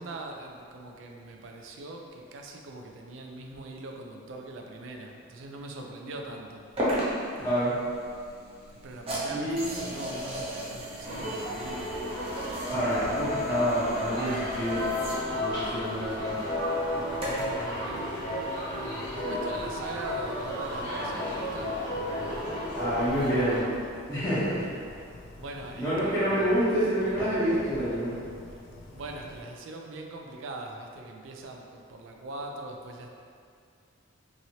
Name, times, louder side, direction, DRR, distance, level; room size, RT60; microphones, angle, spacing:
voice 1, 0.0-6.6 8.8-12.1 16.9-21.8 24.9-25.1 25.3-26.2 27.7-27.8 28.5-28.6 28.9-33.1, right 2 dB, 70° right, 2 dB, 0.3 m, -42 dB
sound 1, 6.8-17.6, equal, 30° right, 0.6 m, -36 dB
voice 2, 7.4-7.8 9.3-9.9 12.7-14.8 15.3-16.4 22.7-23.7 24.1-24.7 25.7-28.1, equal, 20° left, -16 dB, 0.7 m, -27 dB
sound 2, 11.0-23.6, left 1 dB, 45° left, 1.0 m, -33 dB
sound 3, 14.8-29.4, left 2 dB, 85° left, 0.4 m, -47 dB
2.9 x 2.7 x 2.8 m, 2.3 s
head